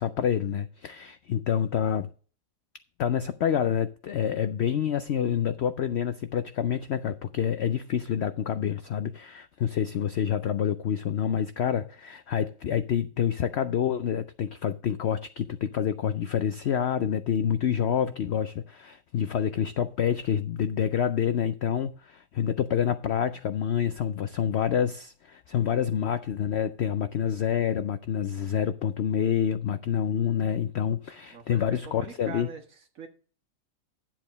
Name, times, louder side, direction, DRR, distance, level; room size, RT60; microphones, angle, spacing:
voice 1, 0.0-2.1 3.0-32.5, left 8 dB, 75° left, 0.6 m, -27 dB
voice 2, 31.3-33.1, right 5 dB, 55° right, 1.8 m, -42 dB
11.0 x 7.6 x 3.9 m
omnidirectional pair, 1.7 m